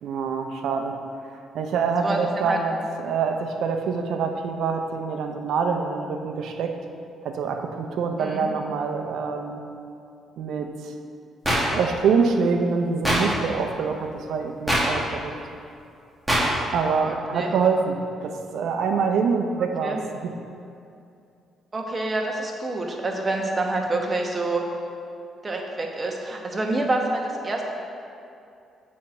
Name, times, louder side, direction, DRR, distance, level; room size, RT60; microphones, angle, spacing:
voice 1, 0.0-1.0 1.5-6.8 7.2-9.7 10.4-10.9 11.7-15.4 16.7-20.3, right 5 dB, 75° right, 5 dB, 0.7 m, -25 dB
voice 2, 2.0-2.6 8.2-8.5 16.9-17.5 19.8-20.0 21.7-24.6 25.4-27.6, right 2 dB, 30° right, 1 dB, 1.1 m, -27 dB
sound 1, 11.4-11.6 13.0-13.2 14.7-14.8 16.3-16.4, equal, 5° right, 1.9 m, -20 dB
7.4 x 4.3 x 5.9 m, 2.5 s
cardioid pair, 90°, 0 cm